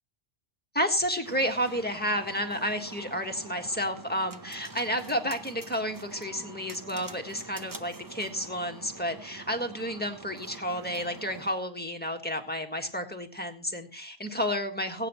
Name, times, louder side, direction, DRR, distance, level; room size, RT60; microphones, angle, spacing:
voice 1, 0.7-15.1, equal, 10° left, 4 dB, 1.5 m, -31 dB
sound 1, 1.2-11.5, right 3 dB, 20° right, 0.7 m, -46 dB
21.5 x 9.0 x 3.0 m, 0.35 s
omnidirectional pair, 1.1 m